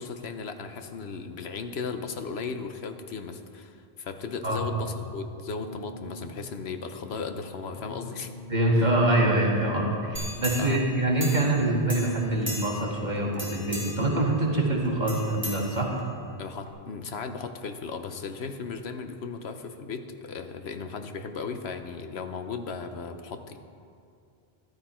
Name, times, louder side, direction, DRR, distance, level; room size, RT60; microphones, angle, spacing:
voice 1, 0.0-8.3 8.7-8.9 10.6-10.8 16.4-23.6, left 5 dB, 85° left, 7 dB, 1.1 m, -36 dB
sound 1, 4.4-5.3 5.6-6.5 6.8-7.3 7.7-8.9 9.2-10.1 10.4-11.1 11.6-11.9 12.2-12.3, left 3 dB, 45° left, 1.5 m, -43 dB
voice 2, 8.5-15.9, right 1 dB, 45° right, -2 dB, 2.0 m, -25 dB
sound 2, 10.1-11.6 11.9-13.0 13.3-14.1 15.1-16.2 16.7-16.8, equal, 10° right, 2.1 m, -37 dB
14.0 x 12.0 x 4.4 m, 2.4 s
omnidirectional pair, 1.0 m